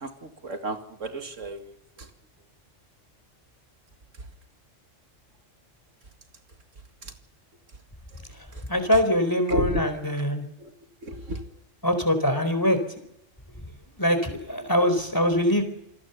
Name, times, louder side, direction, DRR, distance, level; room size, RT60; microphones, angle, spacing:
voice 1, 0.0-1.7 9.5-9.8 10.6-10.7 11.0-11.4, equal, 80° right, 6 dB, 2.4 m, -31 dB
voice 2, 8.7-10.4 11.8-12.8 14.0-15.6, equal, 15° left, 8 dB, 4.3 m, -23 dB
28.5 x 19.0 x 7.0 m, 0.80 s
omnidirectional pair, 1.3 m